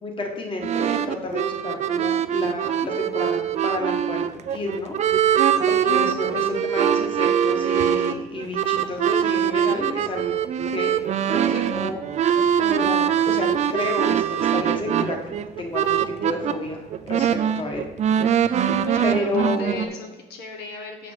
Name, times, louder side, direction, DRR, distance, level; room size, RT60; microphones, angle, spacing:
voice 1, 0.0-10.4 10.6-15.2 15.6-17.2 17.6-17.8 18.4-18.7 19.0-19.9, left 2 dB, 30° left, 2 dB, 1.6 m, -31 dB
sound 1, 0.6-16.5 16.9-19.9, right 9 dB, 45° right, 0.4 m, -22 dB
voice 2, 18.8-21.1, left 2 dB, 75° left, 2 dB, 1.1 m, -37 dB
6.2 x 4.9 x 6.8 m, 1.1 s
cardioid pair, 110°, 17 cm